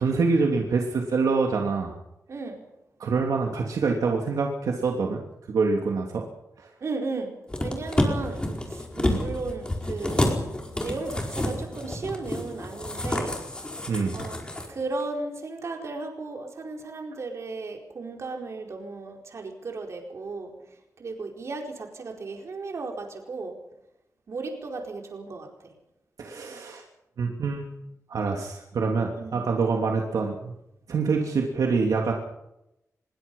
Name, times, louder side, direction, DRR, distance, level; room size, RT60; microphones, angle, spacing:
voice 1, 0.0-1.9 3.0-5.2 5.5-6.2 6.6-6.7 9.0-9.3 13.9-14.2 26.2-26.8 27.2-27.7 28.1-30.5 30.9-32.1, right 4 dB, 85° right, 1 dB, 3.1 m, -25 dB
voice 2, 2.3-2.6 6.8-10.2 10.8-13.6 14.1-14.4 14.7-20.5 21.0-23.6 24.3-25.7 29.2-29.4, right 3 dB, 55° right, 2 dB, 4.7 m, -35 dB
sound 1, 7.5-14.7 15.0-15.1, left 1 dB, 15° left, 4.8 m, -29 dB
25.5 x 23.0 x 5.6 m, 0.87 s
wide cardioid pair, 155°, 6 cm